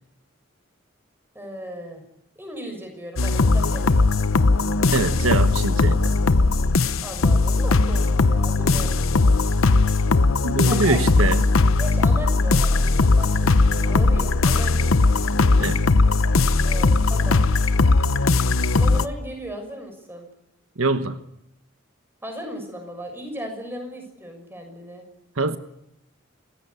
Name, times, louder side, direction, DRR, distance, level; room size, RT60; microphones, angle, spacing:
voice 1, 1.3-2.0 2.3-4.0 7.0-8.9 10.7-11.3 11.8-14.9 16.6-17.4 18.8-20.3 22.2-25.1, equal, 10° right, 4 dB, 6.4 m, -36 dB
sound 1, 3.2-19.1, left 3 dB, 80° left, 0.9 m, -19 dB
voice 2, 4.9-6.1 10.4-11.5 15.6-15.8 20.8-21.2 25.4-25.6, right 3 dB, 80° right, 10 dB, 1.2 m, -24 dB
28.0 x 16.0 x 9.6 m, 0.84 s
head